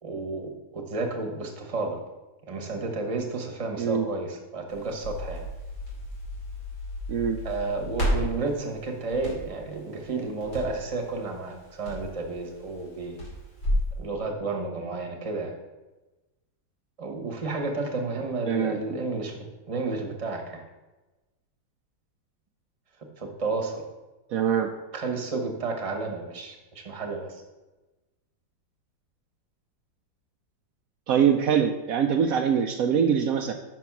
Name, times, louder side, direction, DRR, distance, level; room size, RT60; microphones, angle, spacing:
voice 1, 0.0-2.0 2.5-5.5 7.4-13.2 14.0-15.6 17.0-20.6 23.2-23.8 24.9-27.4, right 3 dB, 25° right, 1 dB, 0.8 m, -31 dB
Crackle, 4.7-13.9, equal, 80° left, 3.9 m, -33 dB
voice 2, 18.5-18.8 24.3-24.7 31.1-33.5, right 8 dB, 90° right, 5 dB, 0.7 m, -23 dB
6.0 x 5.4 x 5.9 m, 1.1 s
omnidirectional pair, 2.1 m